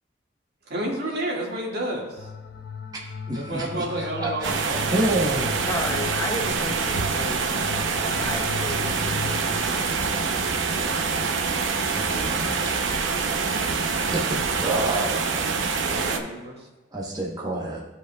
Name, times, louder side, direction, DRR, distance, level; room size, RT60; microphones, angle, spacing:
voice 1, 0.7-2.3 3.4-5.0 15.9-16.7, right 1 dB, 60° right, -3 dB, 1.9 m, -30 dB
sound 1, 2.2-9.6, left 5 dB, 80° left, 0.7 m, -37 dB
voice 2, 3.3-5.8 11.8-12.6 14.1-15.6 16.0-16.1 16.9-17.8, right 1 dB, 20° right, -3 dB, 1.0 m, -29 dB
sound 2, 4.4-16.2, right 4 dB, 85° right, 0.7 m, -25 dB
voice 3, 5.7-9.4 12.4-13.3, left 1 dB, 15° left, 2 dB, 0.6 m, -34 dB
14.0 x 5.0 x 2.3 m, 1.2 s
head